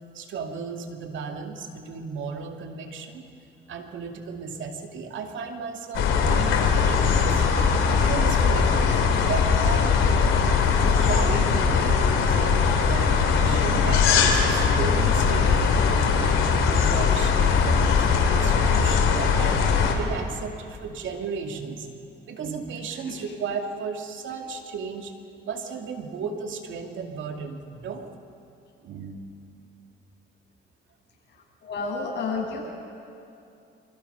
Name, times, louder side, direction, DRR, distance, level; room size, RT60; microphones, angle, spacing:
voice 1, 0.1-3.2 3.7-7.4 8.0-10.0 10.8-16.4 16.7-19.6 19.9-21.9 22.3-25.1 25.4-28.1 28.8-29.2, right 5 dB, 75° right, 4 dB, 2.5 m, -34 dB
sound 1, 5.9-19.9, left 6 dB, 85° left, 2.7 m, -20 dB
voice 2, 22.9-23.3 31.6-32.6, left 4 dB, 60° left, -2 dB, 7.4 m, -31 dB
27.5 x 24.5 x 5.7 m, 2.6 s
cardioid pair, 90°, 20 cm